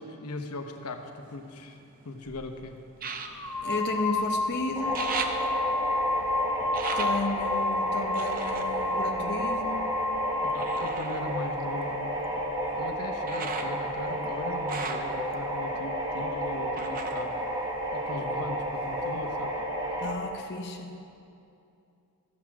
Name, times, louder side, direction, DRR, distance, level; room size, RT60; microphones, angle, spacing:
voice 1, 0.0-1.8 2.0-2.8 10.4-12.3 12.8-17.4 17.9-19.6, left 2 dB, 85° left, 5 dB, 0.9 m, -39 dB
sound 1, 0.8-2.1 2.9-4.5 4.7-9.9 10.5-18.4 18.7-19.5 20.0-20.1, right 5 dB, 40° right, 0.7 m, -40 dB
sound 2, 2.3-2.4 3.2-11.0, left 2 dB, 15° left, 0.6 m, -31 dB
voice 2, 3.6-5.1 6.9-10.0 20.0-21.0, left 2 dB, 50° left, 2 dB, 0.7 m, -33 dB
sound 3, 4.8-20.1, right 1 dB, 20° right, 1.2 m, -32 dB
13.5 x 7.4 x 5.9 m, 2.6 s
head